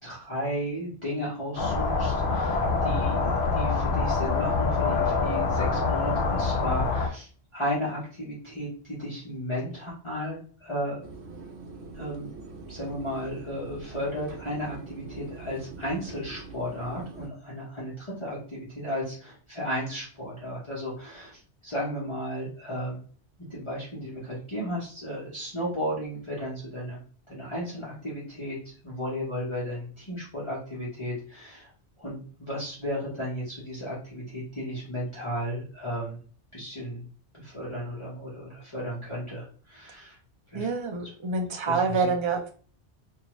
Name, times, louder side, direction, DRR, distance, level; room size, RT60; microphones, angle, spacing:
voice 1, 0.0-11.0 11.9-12.3 12.7-23.0 23.4-27.0 27.3-28.6 28.8-31.7 32.0-36.2 36.5-37.0 37.3-40.2 40.5-40.7 41.0-41.1 41.6-42.1, equal, 30° left, -8 dB, 0.9 m, -34 dB
sound 1, 1.6-7.1, left 4 dB, 60° left, 0.6 m, -25 dB
sound 2, 11.0-17.3, right 4 dB, 75° right, 0.9 m, -43 dB
voice 2, 40.5-42.5, right 4 dB, 55° right, 4 dB, 0.3 m, -27 dB
2.6 x 2.3 x 3.0 m, 0.42 s
omnidirectional pair, 1.1 m